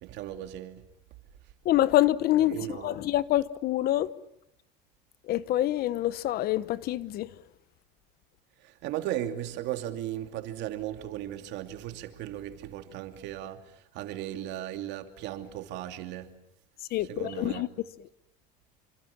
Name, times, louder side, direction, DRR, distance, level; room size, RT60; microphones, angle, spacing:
voice 1, 0.0-0.9 2.4-2.9 8.6-16.3 17.1-17.7, right 12 dB, 55° right, 2.8 m, -36 dB
voice 2, 1.6-4.1 5.3-7.3 16.9-17.7, left 14 dB, 45° left, 1.1 m, -26 dB
28.0 x 25.0 x 7.3 m
supercardioid pair, 120°, 21 cm